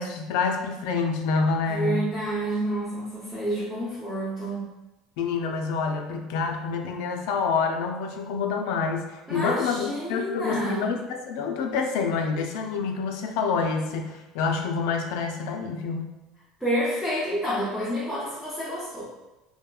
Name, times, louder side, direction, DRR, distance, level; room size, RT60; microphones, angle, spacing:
voice 1, 0.0-2.2 5.2-16.1, left 5 dB, 75° left, 4 dB, 0.4 m, -27 dB
voice 2, 1.7-4.7 9.3-10.9 16.6-19.1, right 1 dB, ahead, -10 dB, 0.6 m, -29 dB
2.9 x 2.2 x 2.3 m, 1.0 s
cardioid pair, 135°, 0 cm